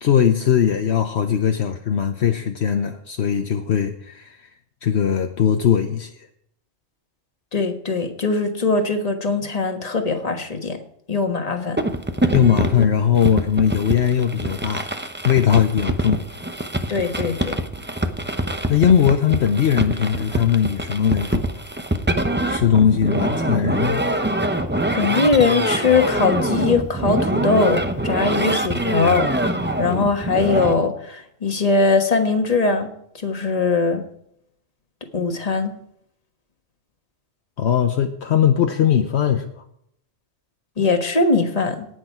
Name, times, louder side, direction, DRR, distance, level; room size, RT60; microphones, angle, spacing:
voice 1, 0.0-4.5 4.8-6.3 12.3-15.0 15.2-16.2 18.7-21.4 22.5-24.0 37.6-39.6, left 8 dB, 65° left, 6 dB, 1.0 m, -19 dB
voice 2, 7.5-10.8 11.1-11.8 16.9-17.6 24.9-29.3 29.8-32.9 33.2-34.0 35.1-35.7 40.8-41.9, left 4 dB, 30° left, 5 dB, 1.5 m, -21 dB
sound 1, 11.8-30.7, right 1 dB, 10° right, 0.7 m, -24 dB
18.0 x 6.4 x 4.5 m, 0.71 s
omnidirectional pair, 1.2 m